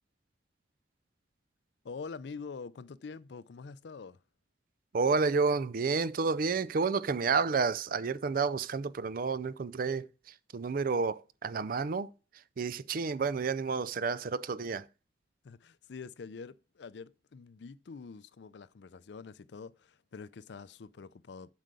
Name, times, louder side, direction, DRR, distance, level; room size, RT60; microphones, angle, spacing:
voice 1, 1.8-4.2 15.4-21.5, left 5 dB, 65° left, 0.4 m, -45 dB
voice 2, 4.9-14.9, right 4 dB, 50° right, 0.4 m, -30 dB
7.6 x 4.8 x 6.7 m
head